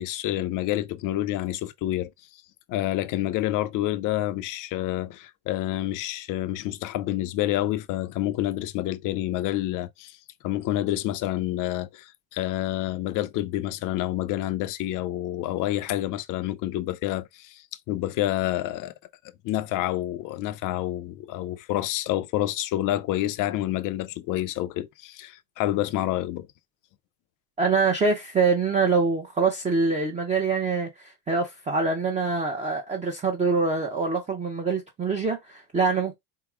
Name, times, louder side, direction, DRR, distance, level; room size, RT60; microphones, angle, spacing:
voice 1, 0.0-2.1 2.7-10.2 10.4-18.9 19.4-26.5, left 14 dB, 45° left, 0.4 m, -28 dB
voice 2, 27.6-36.2, right 4 dB, 15° right, 0.5 m, -25 dB
4.7 x 2.0 x 3.5 m
cardioid pair, 145°, 46 cm